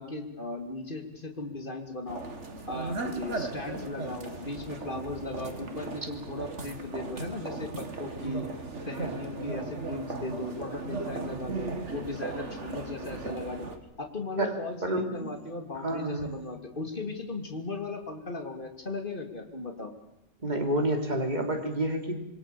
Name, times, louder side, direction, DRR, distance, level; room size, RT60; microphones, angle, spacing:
voice 1, 0.0-2.2 2.7-8.5 8.9-13.7 14.0-19.9, left 2 dB, 40° left, 4 dB, 3.2 m, -37 dB
sound 1, 2.1-13.8, right 3 dB, 65° right, 2.5 m, -37 dB
voice 2, 14.4-15.3 15.7-16.3 20.4-22.1, right 1 dB, 35° right, 3 dB, 3.5 m, -29 dB
27.5 x 22.5 x 7.2 m, 0.93 s
omnidirectional pair, 1.3 m